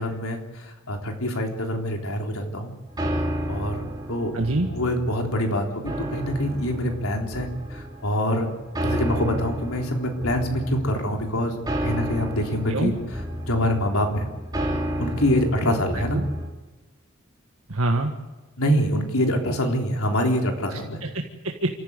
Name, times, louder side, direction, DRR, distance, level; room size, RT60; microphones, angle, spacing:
voice 1, 0.0-2.7 3.5-3.8 4.1-4.3 4.7-8.5 8.8-11.6 11.8-12.9 13.5-14.3 15.0-16.2 18.6-21.0, equal, 80° left, 2 dB, 3.6 m, -25 dB
sound 1, 2.9-16.5, equal, 20° right, 2.8 m, -31 dB
voice 2, 4.3-4.7 12.7-12.9 16.1-16.2 17.7-18.1 20.7-21.7, right 2 dB, 80° right, 2 dB, 1.7 m, -25 dB
27.5 x 14.5 x 8.3 m, 1.2 s
head